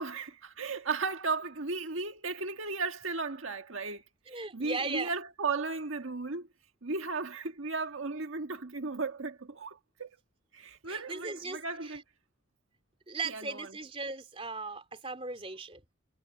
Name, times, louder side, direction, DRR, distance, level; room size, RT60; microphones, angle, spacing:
voice 1, 0.0-6.5 6.8-10.1 10.5-12.0 13.2-13.8, right 4 dB, 80° right, 1.6 m, -35 dB
voice 2, 4.3-5.1 10.9-12.0 13.1-15.8, right 3 dB, 30° right, 3.2 m, -38 dB
head